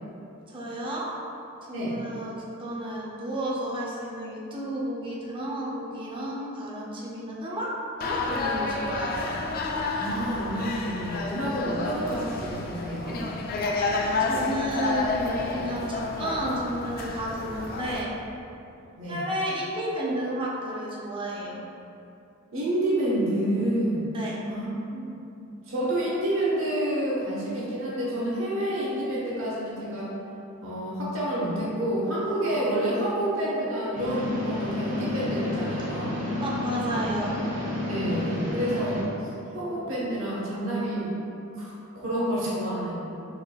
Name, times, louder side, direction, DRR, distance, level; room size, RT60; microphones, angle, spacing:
voice 1, 0.5-1.1 1.7-7.7 8.0-9.4 14.1-18.2 19.1-21.6 24.1-24.4 36.4-37.3, right 1 dB, 25° right, -5 dB, 0.5 m, -32 dB
sound 1, 8.0-18.0, left 3 dB, 45° left, 0.3 m, -30 dB
voice 2, 9.9-13.2 19.0-19.2 22.5-24.0 24.5-25.1 25.7-30.1 30.6-36.2 37.9-41.1 41.6-43.0, right 1 dB, 70° right, -6 dB, 1.1 m, -28 dB
sound 2, 34.0-39.0, left 2 dB, 40° right, 0.9 m, -30 dB
4.8 x 3.1 x 2.2 m, 2.7 s
head